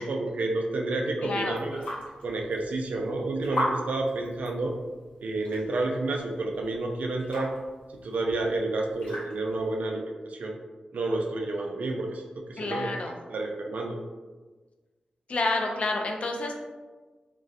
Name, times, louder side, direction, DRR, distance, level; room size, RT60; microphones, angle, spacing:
voice 1, 0.0-1.8 2.2-4.7 5.2-7.5 8.0-10.5 10.9-12.2 12.5-12.9 13.3-14.0, right 2 dB, 70° right, 1 dB, 0.3 m, -30 dB
sound 1, 1.2-9.8, equal, 80° left, 0.8 m, -39 dB
voice 2, 1.2-1.6 12.6-13.2 15.3-16.6, left 2 dB, 55° left, 2 dB, 0.3 m, -29 dB
2.3 x 2.2 x 2.5 m, 1.3 s
wide cardioid pair, 110°, 3 cm